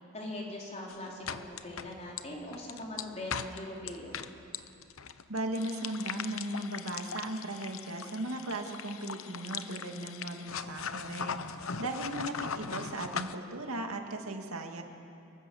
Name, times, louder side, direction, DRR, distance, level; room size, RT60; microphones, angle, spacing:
voice 1, 0.1-4.1, left 1 dB, 30° left, -2 dB, 4.1 m, -41 dB
sound 1, 0.9-13.4, left 6 dB, 75° left, 0.8 m, -40 dB
voice 2, 5.3-11.4 11.8-14.8, right 1 dB, 85° right, 4 dB, 2.2 m, -37 dB
25.0 x 23.0 x 7.1 m, 2.8 s
head